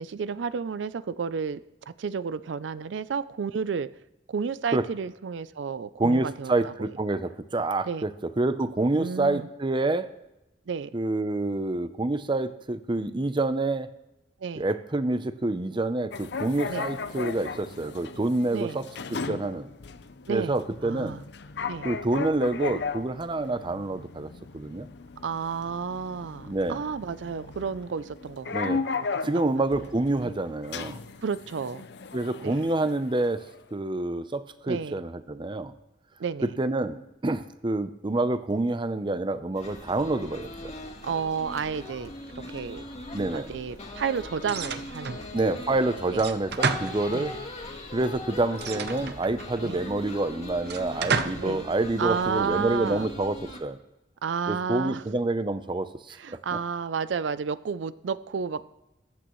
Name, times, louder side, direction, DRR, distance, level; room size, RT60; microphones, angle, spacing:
voice 1, 0.0-3.9 4.3-6.9 7.8-8.1 8.9-9.5 10.7-10.9 14.4-14.7 16.7-16.9 18.5-18.8 20.3-20.6 20.8-21.2 21.7-21.9 25.2-28.8 29.3-29.6 30.2-30.3 31.2-31.8 32.4-32.6 34.6-35.0 36.2-36.5 41.0-42.1 42.5-42.8 43.3-45.3 46.1-46.2 47.1-47.3 49.6-49.8 51.4-51.6 52.0-53.1 54.2-55.0 56.1-58.6, right 6 dB, 90° right, 15 dB, 0.4 m, -31 dB
voice 2, 6.0-8.1 8.4-10.1 10.9-13.9 14.6-18.8 19.1-19.7 20.3-21.2 21.8-24.9 26.5-26.8 28.5-28.8 29.2-31.0 32.1-33.4 33.7-35.7 36.4-40.7 43.1-43.5 45.3-47.3 47.9-53.8 54.5-56.4, right 2 dB, 25° right, 11 dB, 0.6 m, -27 dB
sound 1, 16.1-33.6, left 4 dB, 70° left, 0.6 m, -37 dB
sound 2, 39.5-53.6, left 2 dB, 40° left, 1.9 m, -40 dB
sound 3, 44.4-45.3 46.2-47.5 48.5-49.6 50.6-51.5, right 5 dB, 65° right, 0.8 m, -31 dB
22.0 x 8.8 x 3.1 m, 0.94 s
head